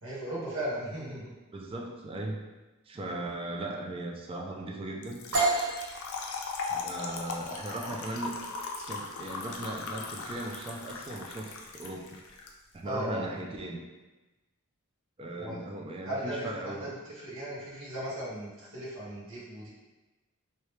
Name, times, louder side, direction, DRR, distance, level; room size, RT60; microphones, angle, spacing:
voice 1, 0.0-1.3 3.0-3.1 12.8-13.2 15.4-15.7 16.0-19.7, right 1 dB, 65° right, -7 dB, 1.2 m, -37 dB
voice 2, 1.5-2.4 2.9-5.2 6.7-8.4 8.8-12.0 12.7-13.8 15.2-16.9, right 2 dB, 25° right, 0 dB, 0.4 m, -38 dB
Trickle dribble / Fill (with liquid), 5.0-12.5, left 4 dB, 65° left, 0.5 m, -38 dB
sound 1, 5.3-13.0, right 3 dB, 90° right, 0.8 m, -35 dB
3.1 x 2.8 x 3.2 m, 1.1 s
head